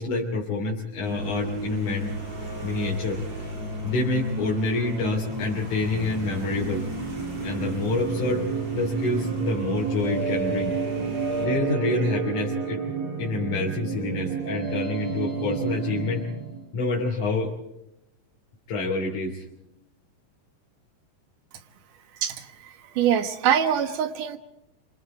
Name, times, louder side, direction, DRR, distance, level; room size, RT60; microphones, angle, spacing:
voice 1, 0.0-2.2 2.6-3.2 3.8-6.8 7.4-8.5 8.7-10.8 11.4-12.8 13.2-16.3 16.7-17.5 18.7-19.4, left 2 dB, 65° left, -3 dB, 4.6 m, -27 dB
sound 1, 1.0-11.5, equal, 55° right, 5.8 m, -34 dB
sound 2, 5.3-16.7, right 5 dB, 40° right, 5.8 m, -31 dB
voice 2, 22.2-24.4, right 9 dB, 75° right, 9 dB, 3.0 m, -24 dB
27.0 x 27.0 x 4.5 m, 0.84 s
omnidirectional pair, 3.8 m